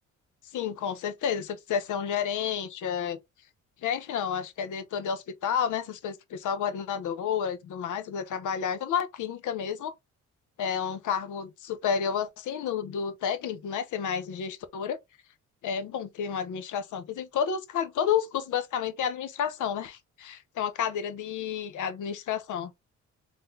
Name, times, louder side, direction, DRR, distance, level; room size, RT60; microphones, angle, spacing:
voice 1, 0.5-3.2 3.8-9.9 10.6-15.0 15.6-22.7, left 8 dB, 80° left, 0.9 m, -30 dB
3.8 x 3.2 x 3.8 m
cardioid pair, 85°, 30 cm